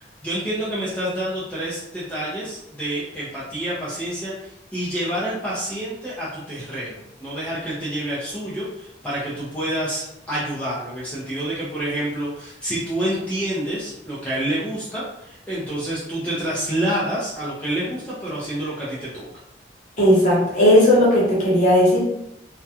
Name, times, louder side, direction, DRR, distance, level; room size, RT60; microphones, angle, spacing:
voice 1, 0.2-19.3, right 1 dB, 10° left, -9 dB, 0.5 m, -28 dB
voice 2, 20.0-22.0, left 1 dB, 45° left, -7 dB, 0.8 m, -16 dB
2.3 x 2.2 x 2.7 m, 0.80 s
head